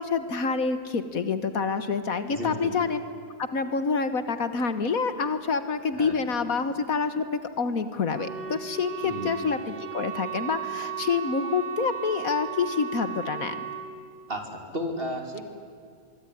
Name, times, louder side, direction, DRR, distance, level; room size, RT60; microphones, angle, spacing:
voice 1, 0.0-3.0 3.5-13.5, left 5 dB, 65° left, 11 dB, 1.8 m, -27 dB
voice 2, 2.3-2.7 6.0-6.1 9.0-9.3 14.3-15.4, equal, 35° right, 5 dB, 3.5 m, -33 dB
Wind instrument woodwind instrument, 8.1-13.9, right 7 dB, 80° right, 2.7 m, -35 dB
24.0 x 24.0 x 10.0 m, 2.3 s
omnidirectional pair, 1.6 m